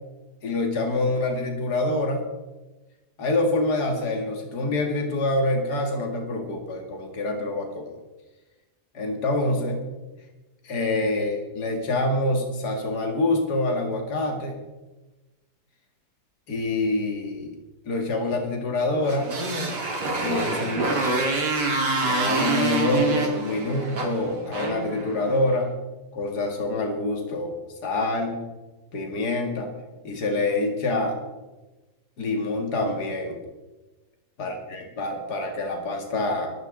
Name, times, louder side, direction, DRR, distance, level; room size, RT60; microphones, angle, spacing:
voice 1, 0.4-2.2 3.2-7.9 8.9-9.8 10.6-14.5 16.5-17.5 17.9-19.3 20.2-21.3 22.0-25.7 26.1-27.5 27.8-28.4 28.9-29.7 30.0-31.2 32.2-33.4 34.4-36.5, left 2 dB, 70° left, 2 dB, 2.5 m, -26 dB
Motorcycle, 19.0-25.5, right 3 dB, 85° right, 3.1 m, -26 dB
23.0 x 12.5 x 3.9 m, 1.1 s
omnidirectional pair, 1.8 m